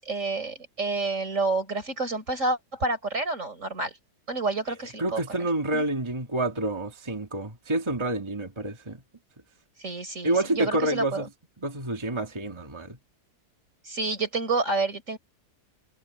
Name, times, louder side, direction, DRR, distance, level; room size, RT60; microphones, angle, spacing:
voice 1, 0.0-3.9 4.3-5.2 5.7-5.8 9.8-11.2 13.9-15.2, right 3 dB, 45° right, 4.8 m, -29 dB
voice 2, 4.7-9.0 10.2-11.3 11.6-13.0, right 1 dB, 15° right, 1.8 m, -28 dB
omnidirectional pair, 1.8 m